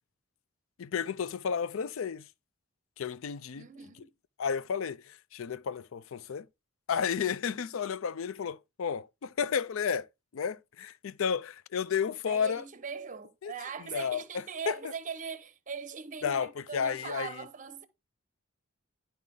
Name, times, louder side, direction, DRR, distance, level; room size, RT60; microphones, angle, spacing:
voice 1, 0.8-2.2 3.0-3.6 4.4-6.5 6.9-10.1 10.3-12.6 13.4-13.5 13.9-14.2 14.7-14.8 16.2-16.5 16.7-17.3, left 7 dB, 70° left, 0.4 m, -32 dB
voice 2, 3.6-4.1 12.3-17.9, right 6 dB, 40° right, 0.8 m, -41 dB
10.5 x 4.2 x 3.8 m
head